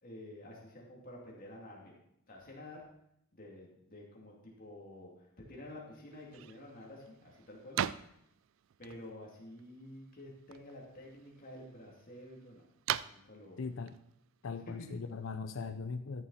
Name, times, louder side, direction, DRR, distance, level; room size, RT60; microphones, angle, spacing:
voice 1, 0.0-2.0 2.3-2.8 3.3-7.8 8.8-12.7 13.1-13.6 14.7-14.9, left 1 dB, 40° left, -2 dB, 2.7 m, -50 dB
sound 1, 6.1-15.3, right 10 dB, 65° right, 0.3 m, -43 dB
voice 2, 13.6-13.9 14.4-16.3, left 4 dB, 65° left, 9 dB, 0.5 m, -39 dB
12.5 x 7.1 x 4.2 m, 0.75 s
head